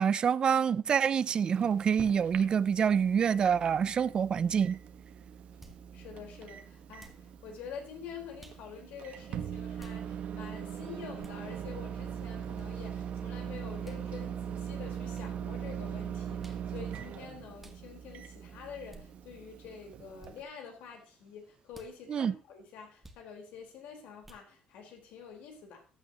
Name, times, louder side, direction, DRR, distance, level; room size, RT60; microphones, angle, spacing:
voice 1, 0.0-4.8 22.1-22.3, right 7 dB, 35° right, 0.5 m, -26 dB
Microwave oven, 1.1-20.4, right 8 dB, 55° right, 1.3 m, -41 dB
sound 1, 5.6-5.8 7.0-7.3 8.4-8.6 9.8-10.0 11.2-11.4 12.6-12.7 13.8-14.0 15.1-15.3 16.4-16.7 17.6-17.8 18.9-19.1 20.2-20.4 21.7-21.9 23.0-23.2 24.2-24.5, right 1 dB, 5° right, 1.5 m, -53 dB
voice 2, 5.9-25.9, left 6 dB, 85° left, 4.3 m, -47 dB
15.0 x 11.5 x 3.0 m
cardioid pair, 150°, 3 cm